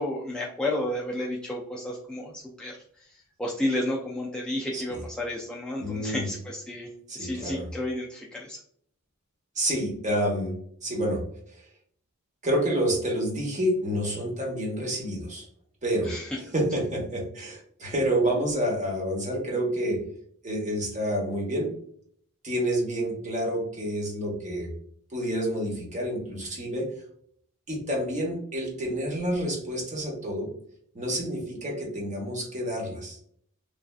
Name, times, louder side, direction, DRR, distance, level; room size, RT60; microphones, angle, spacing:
voice 1, 0.0-6.9 7.1-8.6 16.0-16.4, left 1 dB, 5° left, -4 dB, 0.3 m, -32 dB
voice 2, 5.8-6.3 7.1-7.7 9.5-10.5 10.8-11.2 11.5-11.6 12.4-15.5 15.8-16.1 16.5-20.0 20.4-21.7 22.4-24.7 25.1-26.9 27.7-30.5 30.9-33.2, right 1 dB, 35° right, -1 dB, 1.0 m, -28 dB
3.2 x 2.5 x 2.3 m, 0.64 s
head